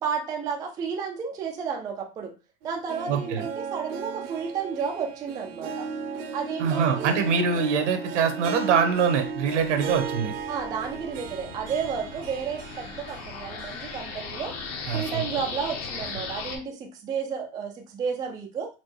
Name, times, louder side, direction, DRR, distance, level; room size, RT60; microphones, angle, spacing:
voice 1, 0.0-2.3 2.6-5.9 6.3-7.2 10.5-14.6 14.9-18.7, right 6 dB, 10° right, 1 dB, 0.3 m, -32 dB
Harp, 2.6-14.8 15.1-15.2 16.1-16.2, right 5 dB, 55° right, 0.7 m, -36 dB
voice 2, 3.1-3.4 6.6-10.3 14.9-15.2, right 6 dB, 85° right, 6 dB, 1.0 m, -24 dB
sound 1, 9.7-16.6, left 5 dB, 40° left, 1.0 m, -38 dB
4.3 x 2.2 x 3.1 m, 0.31 s
supercardioid pair, 130°, 35 cm